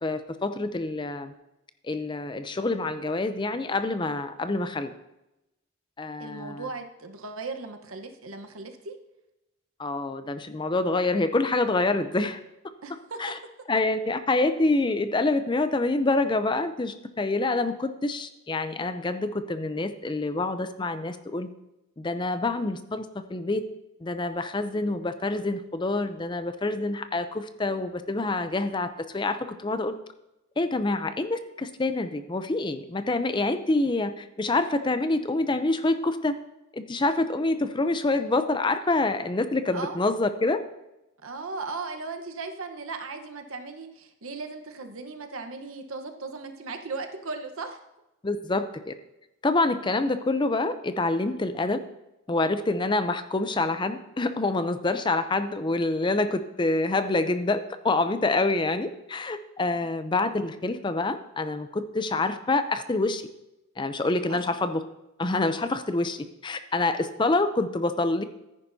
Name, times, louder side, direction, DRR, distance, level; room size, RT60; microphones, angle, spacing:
voice 1, 0.0-1.3 1.8-4.9 6.0-6.7 9.8-12.4 13.2-13.4 13.7-21.5 22.0-23.6 24.0-30.0 30.6-36.3 36.7-40.6 48.2-48.9 49.4-51.8 52.3-63.2 63.8-64.8 65.2-68.2, left 2 dB, 20° left, 10 dB, 0.5 m, -26 dB
voice 2, 6.2-9.0 12.8-13.2 39.7-40.0 41.2-47.8 64.3-64.4, right 3 dB, 75° right, 5 dB, 1.1 m, -37 dB
14.5 x 9.8 x 2.7 m, 0.93 s
head